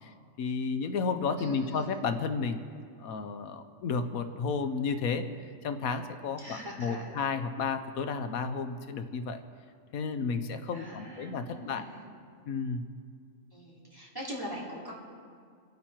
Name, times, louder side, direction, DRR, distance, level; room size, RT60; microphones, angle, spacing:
voice 1, 0.0-2.6 3.0-5.2 5.6-9.4 9.9-11.8 12.5-12.8, left 5 dB, 85° left, 9 dB, 1.3 m, -32 dB
voice 2, 1.4-2.0 6.4-7.1 10.7-12.1 13.5-14.9, equal, 15° right, -6 dB, 3.6 m, -42 dB
27.5 x 9.5 x 4.5 m, 2.1 s
omnidirectional pair, 1.5 m